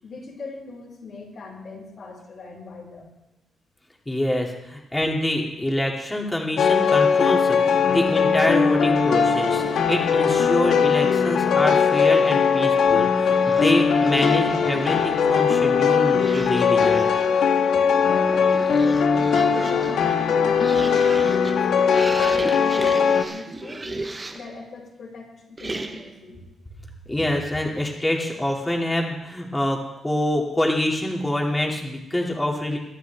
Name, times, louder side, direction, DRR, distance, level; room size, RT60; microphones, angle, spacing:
voice 1, 0.0-3.1 18.0-24.1 24.3-26.4, left 3 dB, 50° left, -1 dB, 5.0 m, -39 dB
voice 2, 4.1-17.1 27.1-29.8 30.0-32.8, left 1 dB, 10° left, -1 dB, 2.6 m, -25 dB
sound 1, 6.6-23.2, left 6 dB, 70° left, 1.5 m, -20 dB
sound 2, 13.3-15.2 16.1-17.4 18.1-24.6 25.6-26.2, right 2 dB, 20° right, 1.0 m, -36 dB
23.5 x 13.0 x 3.5 m, 0.91 s
cardioid pair, 145°, 0 cm